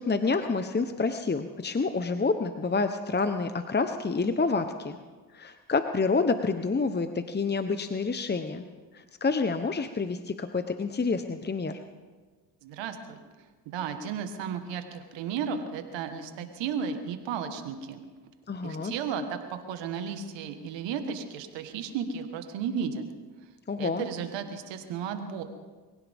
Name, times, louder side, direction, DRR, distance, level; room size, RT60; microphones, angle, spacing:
voice 1, 0.0-5.0 5.3-8.7 8.9-11.8 18.5-18.9 23.7-24.1, left 4 dB, 25° left, 8 dB, 1.0 m, -28 dB
voice 2, 12.6-13.2 13.7-18.0 18.6-23.0 23.8-25.4, right 7 dB, 85° right, 7 dB, 1.6 m, -34 dB
23.5 x 16.5 x 3.6 m, 1.4 s
supercardioid pair, 55°, 43 cm